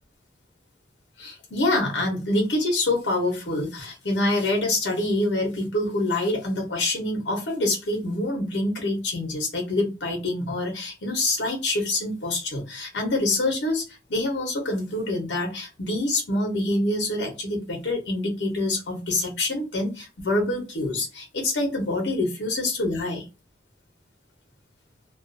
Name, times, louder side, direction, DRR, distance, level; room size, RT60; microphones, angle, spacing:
voice 1, 1.2-23.2, left 2 dB, 70° left, 2 dB, 0.7 m, -26 dB
2.3 x 2.2 x 2.5 m, 0.29 s
head